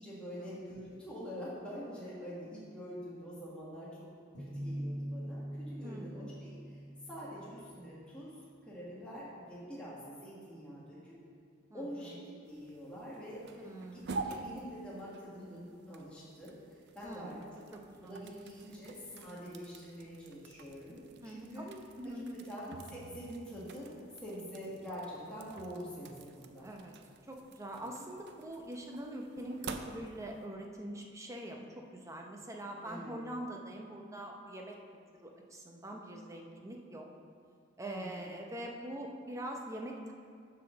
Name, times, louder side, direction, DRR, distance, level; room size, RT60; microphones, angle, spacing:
voice 1, 0.0-4.0 4.4-6.8 7.1-11.1 11.7-17.6 18.0-21.6 22.4-26.7 27.7-28.1 32.8-33.2 37.8-38.2, equal, 5° left, -8 dB, 1.3 m, -46 dB
sound 1, 4.3-8.0, equal, 65° left, 1.3 m, -42 dB
voice 2, 5.8-6.3 11.7-12.2 13.6-14.2 17.0-17.4 17.7-18.2 21.2-22.4 26.6-26.9 27.3-31.6 31.9-37.1 37.8-40.1, right 1 dB, 15° right, 1 dB, 0.7 m, -44 dB
sound 2, 12.4-30.5, right 3 dB, 55° right, 0.4 m, -49 dB
6.8 x 4.9 x 6.3 m, 2.2 s
head